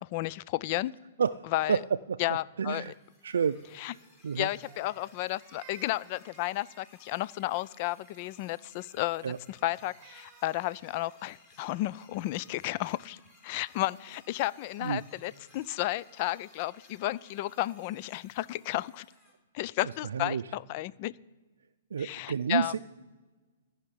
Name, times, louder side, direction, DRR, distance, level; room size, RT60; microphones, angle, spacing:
voice 1, 0.1-0.9 1.5-1.8 2.2-2.8 3.8-3.9 4.4-13.2 13.4-19.1 19.5-21.1 22.0-22.7, left 17 dB, 35° left, 20 dB, 0.3 m, -33 dB
voice 2, 2.6-2.9 3.2-3.6 3.9-4.5 9.2-9.4 14.8-15.0 19.8-20.4 21.9-22.9, right 7 dB, 85° right, 8 dB, 0.4 m, -30 dB
sound 1, 2.7-19.3, left 2 dB, 10° left, 3.6 m, -60 dB
Crying sobbing, 4.6-7.1 9.4-10.8, right 8 dB, 30° right, 1.0 m, -56 dB
14.5 x 5.8 x 9.9 m, 1.3 s
hypercardioid pair, 155°, 0 cm